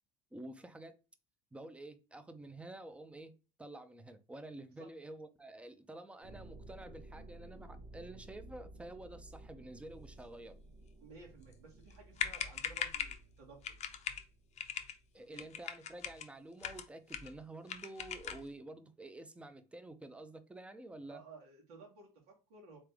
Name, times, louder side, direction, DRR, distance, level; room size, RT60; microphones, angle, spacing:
voice 1, 0.3-1.0 1.5-3.3 3.6-10.6 15.1-21.2, right 1 dB, 5° right, 0.6 m, -49 dB
sound 1, 6.2-15.7, right 2 dB, 70° right, 1.1 m, -55 dB
voice 2, 11.0-13.6 15.3-15.6 21.1-22.8, right 4 dB, 85° right, 1.7 m, -56 dB
sound 2, 11.9-12.0 12.2-13.2 13.6-14.2 14.6-14.9 15.3-16.3 16.6-17.4 17.7-18.5, left 8 dB, 35° left, 0.6 m, -40 dB
3.9 x 3.3 x 3.4 m
supercardioid pair, 100°, 19 cm